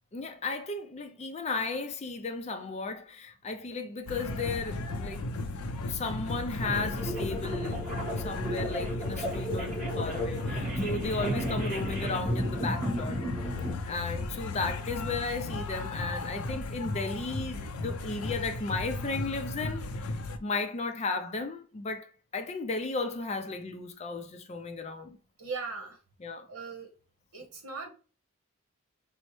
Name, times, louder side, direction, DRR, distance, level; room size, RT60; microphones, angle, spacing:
voice 1, 0.1-5.2 5.9-7.8 8.2-13.2 13.9-25.2 26.2-26.5, left 3 dB, 30° left, 0.4 m, -35 dB
sound 1, 4.1-20.4, left 2 dB, 80° left, 0.5 m, -35 dB
sound 2, 6.6-13.7, equal, 40° right, 1.6 m, -34 dB
voice 2, 25.4-26.0 26.5-26.9 27.3-27.9, right 4 dB, 85° right, 1.0 m, -38 dB
5.2 x 2.1 x 3.1 m
head